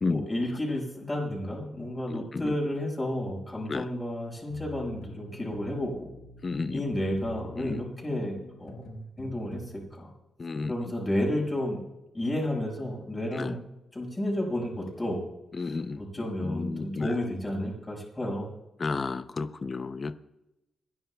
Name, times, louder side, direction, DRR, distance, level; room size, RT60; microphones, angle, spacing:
voice 1, 0.0-6.1 6.7-8.8 9.2-10.1 10.7-11.8 12.1-13.6 13.9-15.3 15.5-18.5, left 1 dB, 15° left, -3 dB, 5.5 m, -32 dB
voice 2, 2.1-2.6 3.7-3.9 6.4-6.8 7.6-7.9 10.4-10.7 13.3-13.5 15.6-17.2 18.8-20.2, left 4 dB, 35° left, 12 dB, 0.6 m, -32 dB
sound 1, 4.5-9.8, left 1 dB, 75° left, 5.1 m, -46 dB
27.5 x 11.0 x 2.3 m, 0.94 s
cardioid pair, 120°, 0 cm